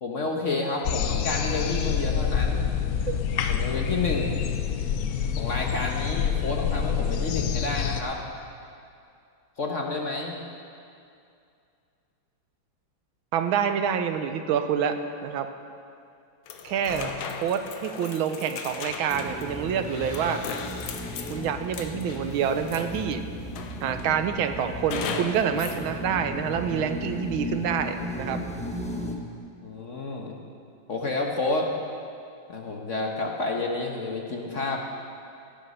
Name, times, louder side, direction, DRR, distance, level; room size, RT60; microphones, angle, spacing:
voice 1, 0.0-2.7 3.5-4.4 5.3-8.2 9.6-10.4 29.6-30.3 30.9-31.7 32.5-34.8, left 3 dB, 45° left, 1 dB, 1.1 m, -30 dB
sound 1, 0.8-8.0, left 7 dB, 65° left, 0.9 m, -27 dB
voice 2, 13.3-15.5 16.6-20.4 21.3-23.2 23.8-28.4, right 8 dB, 90° right, 8 dB, 1.6 m, -27 dB
sound 2, 16.5-23.1 23.6-24.1 24.9-25.8, left 6 dB, 85° left, 1.7 m, -37 dB
sound 3, 19.1-29.2, left 1 dB, 10° left, 0.4 m, -35 dB
17.0 x 8.9 x 5.4 m, 2.5 s
omnidirectional pair, 2.2 m